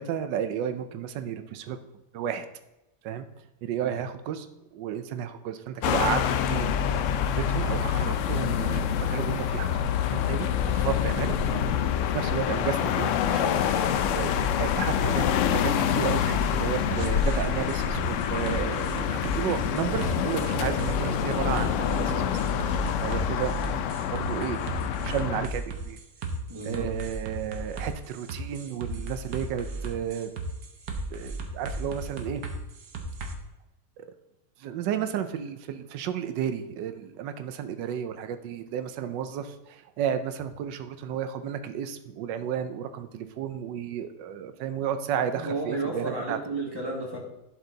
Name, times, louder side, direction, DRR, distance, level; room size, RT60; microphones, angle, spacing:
voice 1, 0.0-1.8 2.1-2.4 3.0-3.3 3.6-4.5 4.7-6.2 6.5-6.7 7.3-11.4 11.7-11.8 12.1-13.7 14.1-22.4 23.0-23.5 24.1-24.6 25.0-26.0 26.6-30.3 31.1-32.4 34.0-34.1 34.6-46.4, right 9 dB, 90° right, 10 dB, 1.3 m, -32 dB
sound 1, 5.8-25.5, left 8 dB, 85° left, 0.6 m, -26 dB
sound 2, 16.9-33.3, right 2 dB, 70° right, 1.5 m, -35 dB
voice 2, 26.5-26.9 45.3-47.2, right 2 dB, 15° right, -2 dB, 1.8 m, -32 dB
11.5 x 4.6 x 3.9 m, 0.93 s
omnidirectional pair, 1.9 m